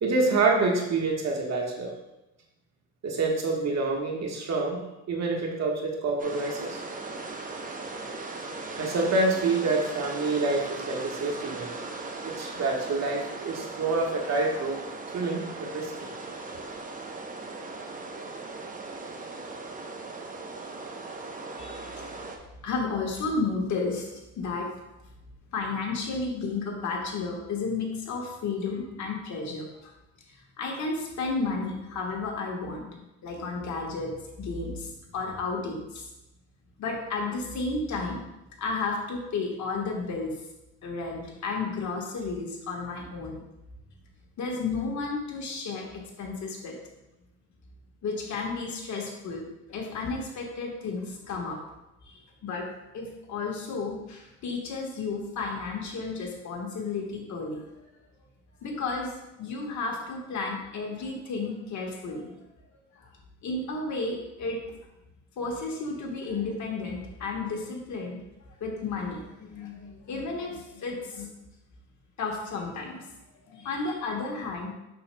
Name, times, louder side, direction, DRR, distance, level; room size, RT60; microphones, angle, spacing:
voice 1, 0.0-1.9 3.0-4.8 5.1-6.8 8.8-11.7 12.2-14.8 15.1-15.9, right 3 dB, 60° right, 0 dB, 1.4 m, -27 dB
sound 1, 6.2-22.4, right 3 dB, 25° right, 0.8 m, -38 dB
voice 2, 22.6-24.7 25.5-29.9 30.3-34.1 34.4-36.1 36.8-38.2 38.6-40.3 40.8-43.4 44.4-46.8 48.0-51.6 52.1-52.7 52.9-57.8 58.6-62.3 62.9-63.1 63.4-64.6 65.4-68.2 68.6-71.3 72.2-73.0 73.5-74.7, left 3 dB, 70° left, 0 dB, 1.5 m, -32 dB
6.8 x 6.3 x 2.2 m, 0.94 s
cardioid pair, 90°, 30 cm